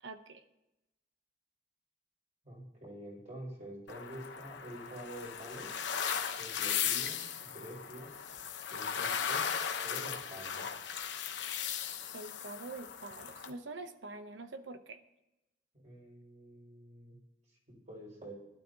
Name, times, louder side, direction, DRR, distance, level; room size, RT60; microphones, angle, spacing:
voice 1, 0.0-0.4 12.1-15.0, right 3 dB, 90° right, 10 dB, 0.8 m, -45 dB
voice 2, 2.4-5.8 6.4-8.1 8.7-9.5 9.8-10.6 15.8-17.2 17.9-18.3, right 1 dB, 40° right, -4 dB, 5.6 m, -47 dB
sound 1, 3.9-13.5, left 8 dB, 75° left, 1.0 m, -37 dB
19.5 x 12.0 x 2.9 m, 0.95 s
head